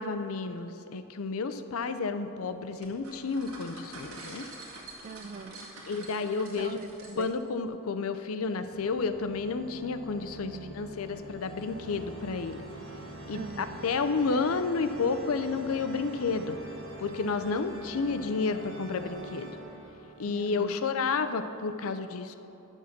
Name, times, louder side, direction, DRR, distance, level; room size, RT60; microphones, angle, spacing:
voice 1, 0.0-4.5 5.9-6.8 7.2-12.6 13.3-16.6 17.0-19.5 20.2-22.3, left 4 dB, 75° left, 10 dB, 0.5 m, -31 dB
sound 1, 2.8-7.5, right 2 dB, 90° right, 2.0 m, -46 dB
voice 2, 5.0-5.7 6.5-7.3 10.4-10.8 13.3-13.8 20.3-20.8, right 4 dB, 35° right, 11 dB, 0.4 m, -42 dB
sound 2, 6.7-7.9 8.5-21.1, right 1 dB, 70° right, 1.8 m, -45 dB
9.9 x 7.2 x 5.9 m, 2.9 s
head